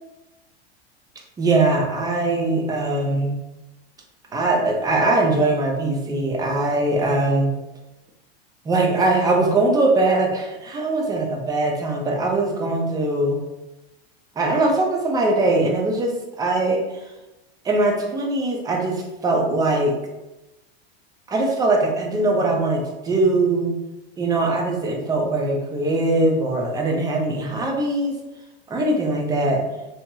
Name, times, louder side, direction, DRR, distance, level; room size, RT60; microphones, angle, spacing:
voice 1, 1.4-3.3 4.3-7.5 8.7-13.4 14.4-16.8 17.6-20.0 21.3-23.7 24.2-28.1 28.7-29.6, right 2 dB, 10° right, 0 dB, 0.4 m, -21 dB
2.9 x 2.8 x 2.2 m, 1.0 s
supercardioid pair, 125°, 32 cm